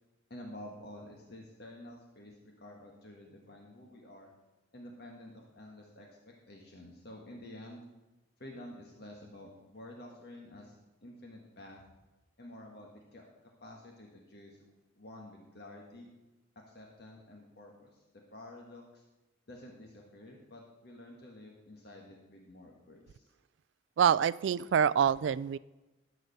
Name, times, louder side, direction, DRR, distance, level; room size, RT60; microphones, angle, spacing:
voice 1, 0.3-4.3 4.7-7.8 8.4-10.7 11.0-11.8 12.4-14.6 15.0-16.1 16.7-19.0 19.5-23.3, left 1 dB, 60° left, 0 dB, 1.5 m, -50 dB
voice 2, 24.0-25.6, right 8 dB, 70° right, 19 dB, 0.3 m, -26 dB
13.0 x 5.0 x 6.7 m, 1.1 s
head